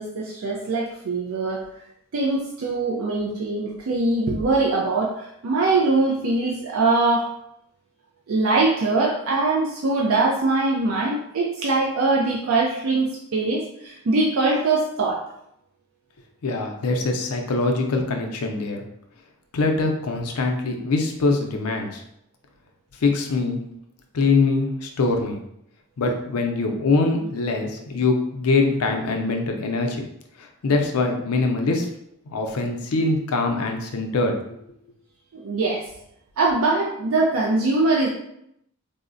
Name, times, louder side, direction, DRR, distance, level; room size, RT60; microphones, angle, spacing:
voice 1, 0.0-1.6 2.1-7.3 8.3-15.2 35.3-35.8 36.4-38.1, right 3 dB, 65° right, -2 dB, 0.4 m, -22 dB
voice 2, 16.4-18.8 19.5-22.0 23.0-23.6 24.1-25.4 26.0-30.0 30.4-31.9 32.3-34.6, left 3 dB, 85° left, 3 dB, 0.5 m, -23 dB
3.6 x 2.0 x 2.5 m, 0.77 s
head